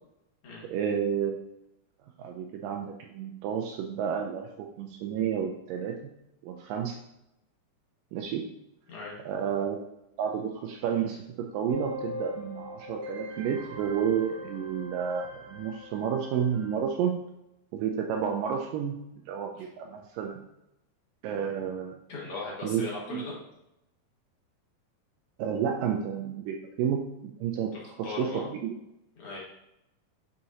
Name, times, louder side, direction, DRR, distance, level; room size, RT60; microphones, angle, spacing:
voice 1, 0.7-1.4 2.2-5.9 6.4-7.0 8.1-8.4 9.3-9.8 10.2-17.2 17.7-19.0 19.3-20.4 21.2-22.0 22.6-23.2 25.4-27.7 28.2-28.8, right 8 dB, 85° right, 3 dB, 1.9 m, -31 dB
sound 1, 11.7-16.8, left 1 dB, 55° right, 1.9 m, -41 dB
voice 2, 22.1-23.4 27.8-28.5 29.2-29.4, left 3 dB, 50° left, -4 dB, 2.1 m, -38 dB
7.7 x 5.6 x 2.8 m, 0.86 s
omnidirectional pair, 4.4 m